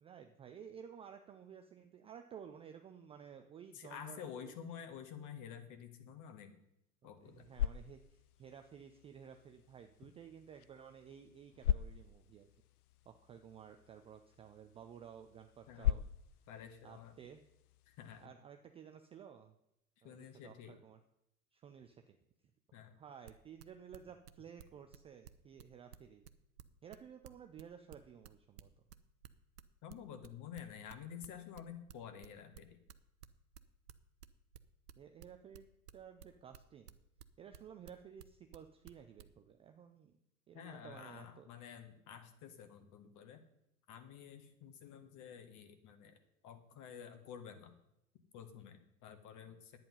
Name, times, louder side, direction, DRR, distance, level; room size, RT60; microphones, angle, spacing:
voice 1, 0.0-4.5 7.0-12.5 13.1-16.0 16.8-17.4 18.2-19.6 20.0-21.0 21.5-22.2 23.0-26.2 26.8-28.7 35.0-37.0 37.4-40.2 40.5-41.5, right 8 dB, 15° right, 6 dB, 0.4 m, -54 dB
voice 2, 3.7-6.5 7.0-7.5 15.7-16.0 16.5-17.1 17.9-18.3 20.0-20.8 22.7-22.9 29.8-32.8 40.5-43.4 43.9-46.2 46.4-47.8 48.3-49.8, left 8 dB, 40° left, 8 dB, 1.7 m, -50 dB
sound 1, 7.2-18.3, left 11 dB, 75° left, 0.6 m, -42 dB
sound 2, 23.1-39.3, right 10 dB, 75° right, 0.9 m, -55 dB
10.5 x 9.2 x 5.5 m, 0.80 s
hypercardioid pair, 95°, 46 cm